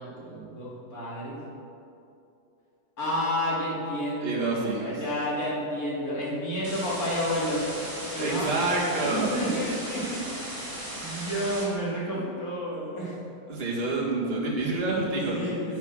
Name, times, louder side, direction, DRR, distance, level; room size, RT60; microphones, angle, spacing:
voice 1, 0.0-1.4 3.0-7.8 8.1-8.5 9.0-13.2 15.3-15.8, equal, 45° left, -6 dB, 3.1 m, -30 dB
voice 2, 4.2-5.0 8.2-9.4 13.5-15.4, right 2 dB, 30° right, -4 dB, 2.0 m, -28 dB
sound 1, 6.6-11.6, right 1 dB, 10° right, 2.9 m, -37 dB
9.6 x 8.3 x 6.4 m, 2.7 s
omnidirectional pair, 2.3 m